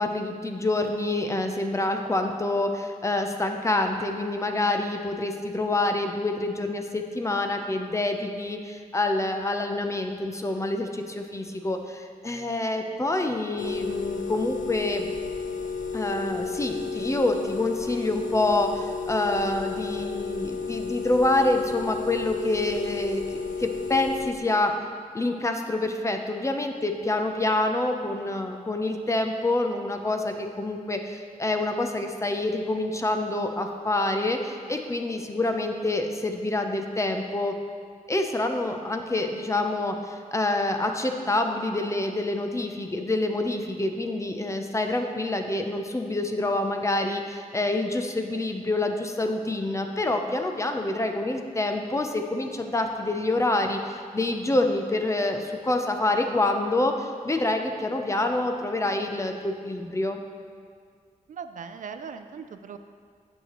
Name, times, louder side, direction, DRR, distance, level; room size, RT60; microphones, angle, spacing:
voice 1, 0.0-15.1 15.9-24.8 25.1-37.5 38.1-60.2, left 2 dB, 20° left, 4 dB, 0.5 m, -27 dB
sound 1, 13.6-24.3, left 5 dB, 70° left, 0.6 m, -32 dB
voice 2, 61.3-62.8, right 6 dB, 70° right, 9 dB, 0.4 m, -39 dB
9.1 x 6.5 x 3.0 m, 2.1 s
wide cardioid pair, 110°, 14 cm